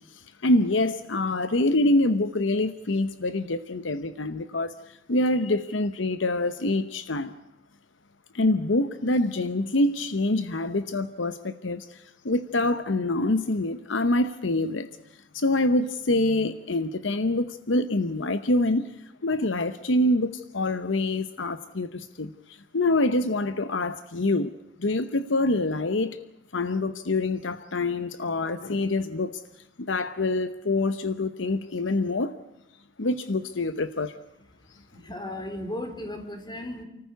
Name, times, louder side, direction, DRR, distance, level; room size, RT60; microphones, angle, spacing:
voice 1, 0.1-7.4 8.3-14.9 15.3-18.9 19.2-26.2 26.5-29.4 29.8-32.4 33.0-34.2, left 2 dB, 70° left, 0.9 m, -26 dB
voice 2, 35.0-36.8, left 1 dB, 25° left, 3.6 m, -35 dB
29.5 x 14.5 x 8.1 m
head